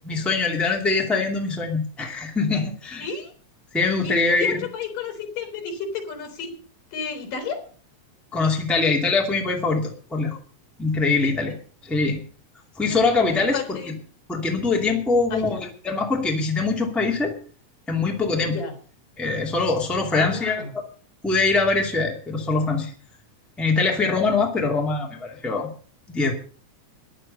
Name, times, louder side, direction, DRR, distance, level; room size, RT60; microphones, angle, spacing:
voice 1, 0.1-3.1 3.7-4.6 8.3-10.4 10.8-11.5 11.8-12.2 12.8-13.8 14.3-17.3 17.9-18.6 19.2-20.6 21.2-22.9 23.6-25.7 26.1-26.3, left 3 dB, ahead, 0 dB, 1.9 m, -23 dB
voice 2, 3.0-3.3 4.0-6.5 6.9-7.7 11.2-11.4 12.9-13.0 13.4-14.0 15.3-15.6 18.4-18.8 20.1-20.8, left 5 dB, 80° left, 6 dB, 5.5 m, -32 dB
14.5 x 11.5 x 5.5 m, 0.43 s
omnidirectional pair, 3.8 m